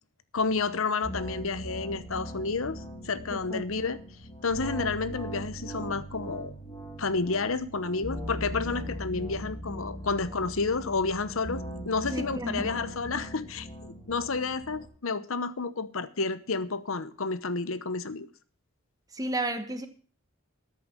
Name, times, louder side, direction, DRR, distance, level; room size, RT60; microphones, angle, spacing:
voice 1, 0.3-4.0 4.4-6.5 7.0-13.7 14.1-18.3, left 4 dB, 75° left, 14 dB, 1.0 m, -30 dB
sound 1, 1.0-14.9, right 1 dB, 25° left, 2.8 m, -40 dB
voice 2, 3.3-3.6 12.1-12.7 19.1-19.9, right 1 dB, 15° right, 8 dB, 1.3 m, -32 dB
13.5 x 6.9 x 7.5 m, 0.41 s
head